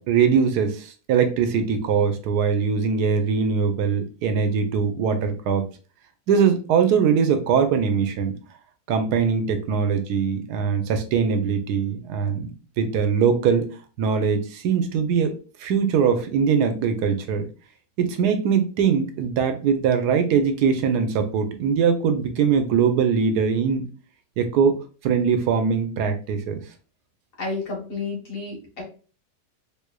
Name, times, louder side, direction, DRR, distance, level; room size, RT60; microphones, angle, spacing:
voice 1, 0.0-5.6 6.3-8.3 8.9-13.7 14.0-15.3 15.6-17.5 18.0-23.8 24.4-24.7 25.0-26.6, right 6 dB, 90° right, 7 dB, 1.2 m, -21 dB
voice 2, 27.4-28.8, left 3 dB, 55° left, -2 dB, 1.7 m, -31 dB
3.6 x 3.3 x 2.2 m, 0.37 s
omnidirectional pair, 1.7 m